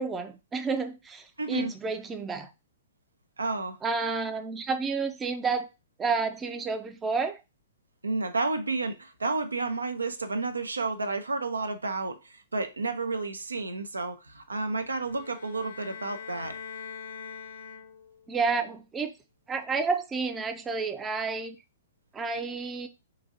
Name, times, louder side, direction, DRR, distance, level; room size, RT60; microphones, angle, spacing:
voice 1, 0.0-2.5 3.8-5.7 6.0-7.4 18.3-19.1 19.5-21.6 22.1-22.9, right 4 dB, 15° right, 0.4 m, -30 dB
voice 2, 1.4-1.7 3.4-3.8 8.0-16.6, right 3 dB, 85° right, 0.5 m, -31 dB
sound 1, 15.0-18.3, left 7 dB, 60° left, 0.7 m, -43 dB
3.8 x 2.6 x 2.7 m
figure-of-eight pair, 115°, 0 cm